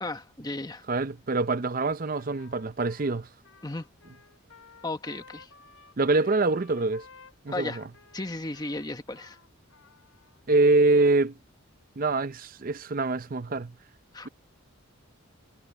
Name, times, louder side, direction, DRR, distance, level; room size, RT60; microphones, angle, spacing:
voice 1, 0.0-0.9 3.6-3.9 4.8-5.5 7.5-7.8 8.1-9.4 14.1-14.3, left 2 dB, 20° left, 1.1 m, -34 dB
voice 2, 0.9-3.3 6.0-7.0 7.4-7.8 10.5-11.4 12.0-13.7, right 3 dB, 40° right, 0.6 m, -25 dB
Trumpet, 2.1-10.4, left 5 dB, 85° left, 4.6 m, -54 dB
head